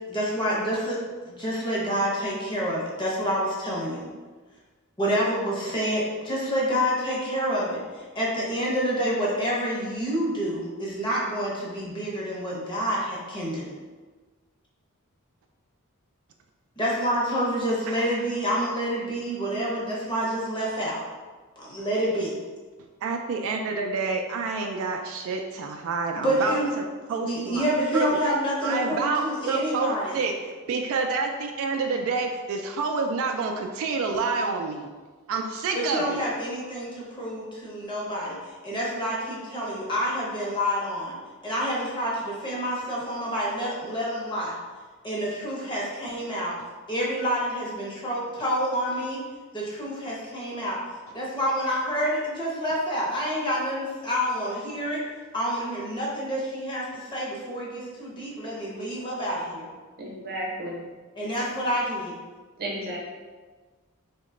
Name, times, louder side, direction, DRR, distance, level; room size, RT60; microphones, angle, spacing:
voice 1, 0.1-4.1 5.0-7.8 8.1-13.7 16.8-21.0 21.6-22.3 26.2-26.7 27.2-30.2 35.7-38.4 38.6-41.2 41.4-44.6 45.0-46.5 46.9-49.2 49.5-50.8 51.1-55.0 55.3-59.7 61.2-62.1, equal, 20° left, -4 dB, 0.7 m, -28 dB
voice 2, 23.0-26.8 27.1-27.7 27.9-28.2 28.6-30.3 30.7-34.9 35.3-36.2, right 4 dB, 65° right, 3 dB, 0.3 m, -28 dB
voice 3, 60.0-60.9 62.6-63.0, right 1 dB, 45° right, -3 dB, 0.7 m, -33 dB
2.9 x 2.1 x 3.7 m, 1.4 s
head